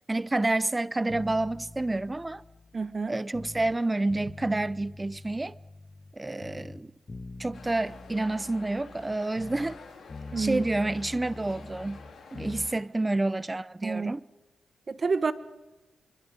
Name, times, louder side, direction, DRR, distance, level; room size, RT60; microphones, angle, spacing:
voice 1, 0.1-2.4 3.1-5.5 6.2-6.9 7.4-9.8 10.4-12.0 12.3-14.2, right 2 dB, 25° right, 0.6 m, -29 dB
sound 1, 1.1-3.8 4.1-6.2 6.4-9.8 10.1-12.7, left 3 dB, 40° left, 1.5 m, -44 dB
voice 2, 2.7-3.2 10.3-10.6 13.8-14.2 14.9-15.3, right 4 dB, 50° right, 1.3 m, -28 dB
sound 2, 7.5-12.8, left 5 dB, 65° left, 4.6 m, -49 dB
24.5 x 24.0 x 5.2 m
supercardioid pair, 50°, 0 cm